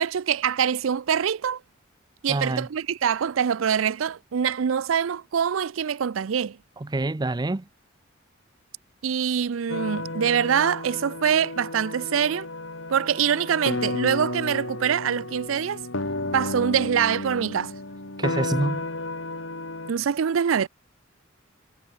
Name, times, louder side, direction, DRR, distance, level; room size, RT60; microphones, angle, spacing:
voice 1, 0.0-1.6 2.2-6.6 9.0-12.5 12.9-15.8 16.3-17.7 19.9-20.7, right 8 dB, 85° right, 0.5 m, -24 dB
voice 2, 2.3-2.7 6.8-7.6 18.2-18.8, right 2 dB, 20° right, 0.5 m, -26 dB
sound 1, 9.7-19.9, left 2 dB, 75° left, 3.3 m, -32 dB
head